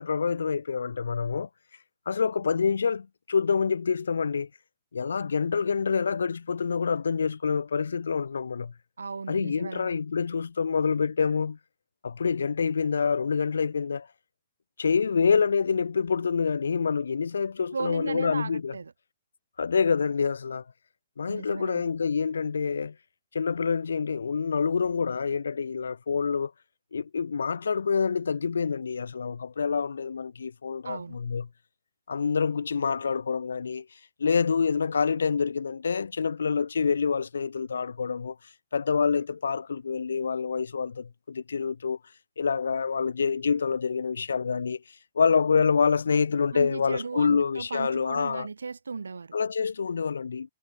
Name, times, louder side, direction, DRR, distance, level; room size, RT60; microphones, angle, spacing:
voice 1, 0.0-1.5 2.1-4.5 4.9-8.7 9.3-11.6 12.0-14.1 14.8-18.7 19.6-20.6 21.2-23.0 23.3-26.5 26.9-31.5 32.1-33.9 34.2-38.4 38.7-42.0 42.4-44.8 45.2-48.5 49.3-50.5, left 5 dB, 70° left, 7.2 m, -27 dB
voice 2, 9.0-10.0 17.7-18.9 21.3-21.8 30.8-31.2 46.5-49.4, right 4 dB, 75° right, 5.8 m, -36 dB
figure-of-eight pair, 120°, 0 cm